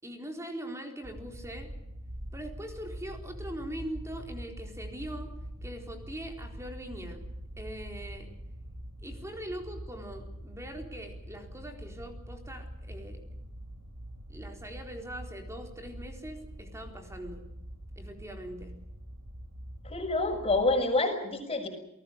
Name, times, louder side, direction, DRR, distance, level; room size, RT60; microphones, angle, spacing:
voice 1, 0.0-1.7 2.3-5.3 5.6-7.2 7.6-8.3 9.0-13.2 14.3-17.5 18.0-18.8, right 1 dB, 15° right, 4 dB, 4.2 m, -42 dB
sound 1, 1.0-20.8, equal, 80° right, 3.1 m, -44 dB
voice 2, 19.8-21.7, left 2 dB, 30° left, 4 dB, 6.4 m, -27 dB
28.5 x 19.5 x 6.6 m, 0.84 s
head